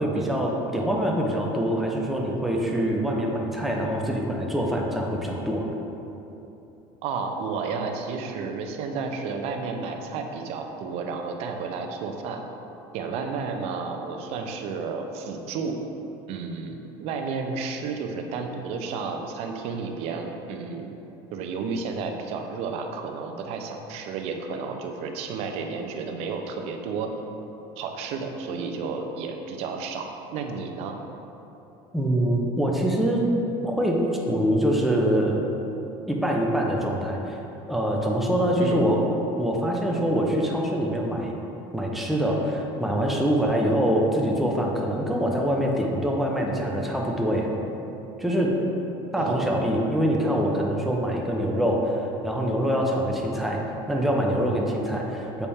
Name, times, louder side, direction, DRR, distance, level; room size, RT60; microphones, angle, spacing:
voice 1, 0.0-5.6 31.9-33.3 33.6-35.5 36.1-37.4 37.7-39.0 39.4-41.4 41.7-47.5 48.2-48.6 49.1-53.6 53.9-55.5, equal, ahead, -2 dB, 0.7 m, -24 dB
voice 2, 7.0-12.4 12.9-15.8 16.3-20.9 21.3-27.1 27.8-31.0 38.6-38.9 49.2-49.6, right 4 dB, 60° right, 4 dB, 0.6 m, -32 dB
7.1 x 4.1 x 3.5 m, 3.0 s
cardioid pair, 130°, 12 cm